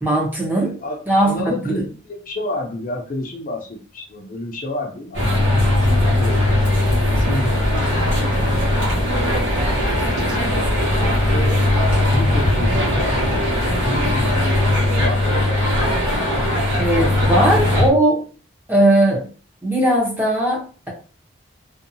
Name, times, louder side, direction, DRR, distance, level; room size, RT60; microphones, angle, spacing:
voice 1, 0.0-0.7 1.1-1.3 1.6-1.8 16.8-18.2 18.7-19.2 19.6-20.9, right 1 dB, 10° right, -2 dB, 0.7 m, -18 dB
voice 2, 0.6-6.4 7.1-7.5 8.2-8.5 10.8-11.6 12.1-15.4 16.4-17.9, left 1 dB, 45° left, 1 dB, 0.5 m, -30 dB
sound 1, 5.1-17.9, left 1 dB, 75° right, 1.2 m, -19 dB
2.6 x 2.2 x 2.6 m, 0.38 s
head